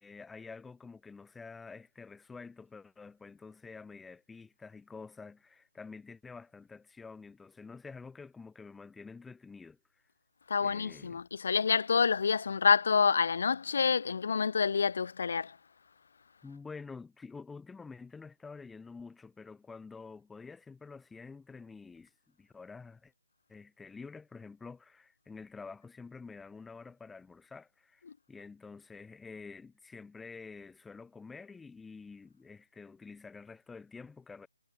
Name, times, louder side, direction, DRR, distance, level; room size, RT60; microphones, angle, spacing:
voice 1, 0.0-10.0 10.6-11.2 16.4-22.1 22.4-23.1 23.5-34.5, left 4 dB, 5° left, 2.6 m, -48 dB
voice 2, 10.5-15.6, left 5 dB, 60° left, 3.6 m, -27 dB
hypercardioid pair, 155°, 0 cm